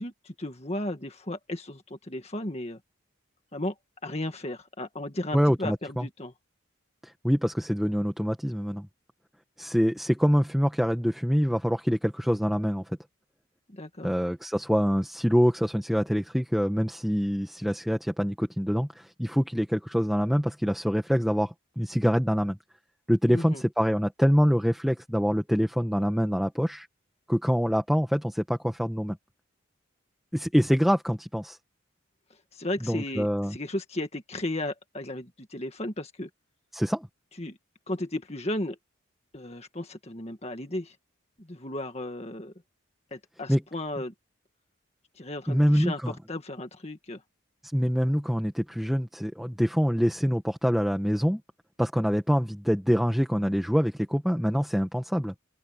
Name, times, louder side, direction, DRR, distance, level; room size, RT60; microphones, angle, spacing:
voice 1, 0.0-2.8 3.5-3.7 4.0-6.3 13.7-14.1 23.3-23.6 32.5-36.3 37.4-37.6 37.9-38.8 39.3-41.0 41.4-42.5 43.1-44.1 45.2-47.2, left 1 dB, 30° left, 1.8 m, -35 dB
voice 2, 5.3-6.0 7.0-8.9 9.6-13.0 14.0-22.6 23.1-26.9 27.3-29.2 30.3-31.6 32.8-33.6 36.7-37.1 43.5-43.6 45.5-46.1 47.7-51.4 51.8-55.3, equal, ahead, 1.4 m, -25 dB
open air
head